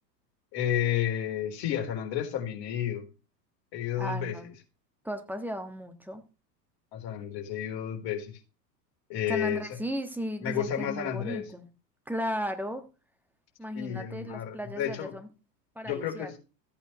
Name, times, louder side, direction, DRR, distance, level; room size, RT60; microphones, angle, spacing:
voice 1, 0.5-3.1 3.7-4.4 6.9-8.3 9.1-9.6 10.4-11.4 13.7-15.1 15.8-16.3, left 10 dB, 45° left, 3.7 m, -31 dB
voice 2, 4.0-4.5 5.0-6.2 9.3-11.6 12.1-12.8 13.6-15.3 15.7-16.3, equal, 5° right, 1.5 m, -35 dB
14.5 x 8.7 x 3.0 m
figure-of-eight pair, 85°, 50 cm